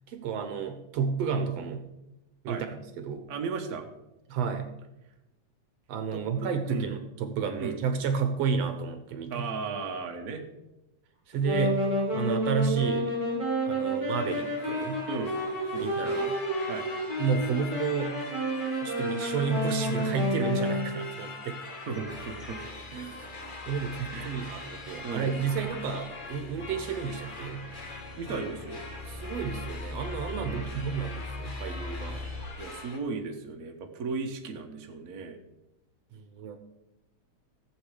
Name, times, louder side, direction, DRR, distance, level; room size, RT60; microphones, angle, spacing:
voice 1, 0.1-1.9 2.4-3.3 4.3-4.7 5.9-9.5 11.3-11.8 12.1-13.2 13.7-15.0 15.8-16.4 17.2-18.2 18.8-21.9 22.9-23.3 23.7-27.7 28.3-28.4 29.1-32.2 36.1-36.6, right 6 dB, 70° right, 7 dB, 2.0 m, -31 dB
voice 2, 3.3-3.9 6.1-6.9 7.6-7.7 9.3-10.5 15.1-15.4 15.7-15.9 16.7-16.9 21.9-22.6 24.1-24.4 25.0-25.4 26.6-26.7 28.2-28.8 30.4-30.7 32.6-35.4, right 4 dB, 45° right, 2 dB, 1.3 m, -36 dB
Wind instrument woodwind instrument, 11.3-21.0, equal, 15° left, 3.9 m, -30 dB
sound 1, 14.1-33.0, left 3 dB, 65° left, 0.4 m, -43 dB
sound 2, 22.0-32.4, left 2 dB, 30° left, 3.9 m, -42 dB
15.0 x 8.0 x 5.0 m, 0.94 s
omnidirectional pair, 3.3 m